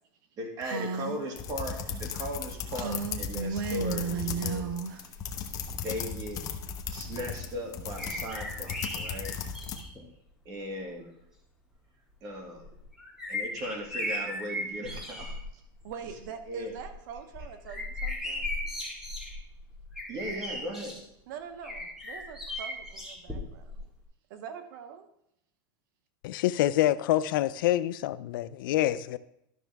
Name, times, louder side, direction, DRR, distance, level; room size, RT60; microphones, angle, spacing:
voice 1, 0.4-4.7 5.7-6.5 6.9-9.3 10.5-11.1 12.2-12.7 13.3-15.3 16.5-16.7 20.1-21.0, equal, 35° right, 2 dB, 2.3 m, -37 dB
Female speech woman speaking, 0.6-1.2 2.7-5.0, right 5 dB, 90° right, 0.7 m, -33 dB
sound 1, 1.4-9.8, left 6 dB, 30° left, 1.0 m, -36 dB
sound 2, 8.0-10.0 10.9-11.0 12.6-15.5 15.8-16.2 16.6-21.0 21.6-23.8 24.0-24.1, left 1 dB, 5° right, 2.2 m, -37 dB
voice 2, 15.8-18.5 21.3-23.8 24.3-25.1, right 7 dB, 65° right, 8 dB, 1.0 m, -44 dB
voice 3, 26.2-29.2, left 14 dB, 75° left, 15 dB, 0.5 m, -26 dB
12.0 x 6.3 x 3.5 m, 0.79 s
supercardioid pair, 145°, 11 cm